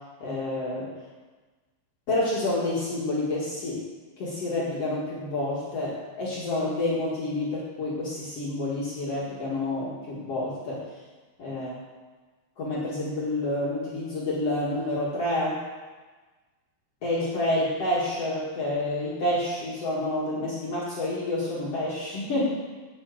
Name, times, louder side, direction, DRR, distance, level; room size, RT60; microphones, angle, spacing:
voice 1, 0.2-0.9 2.1-3.8 4.2-10.8 11.4-11.8 12.6-15.6 17.0-22.4, left 1 dB, 60° left, -7 dB, 1.6 m, -28 dB
9.2 x 7.7 x 7.9 m, 1.3 s
omnidirectional pair, 5.9 m